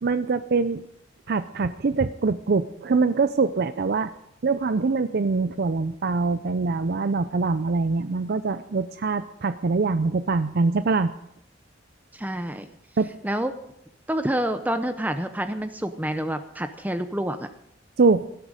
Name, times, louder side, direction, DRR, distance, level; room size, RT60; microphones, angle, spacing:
voice 1, 0.0-0.8 1.3-4.1 4.4-11.1 13.0-13.1 18.0-18.2, right 4 dB, 60° right, 12 dB, 0.5 m, -23 dB
voice 2, 12.1-12.7 13.2-13.5 14.1-17.5, right 1 dB, 10° right, 9 dB, 0.7 m, -28 dB
17.5 x 12.5 x 5.1 m, 0.76 s
head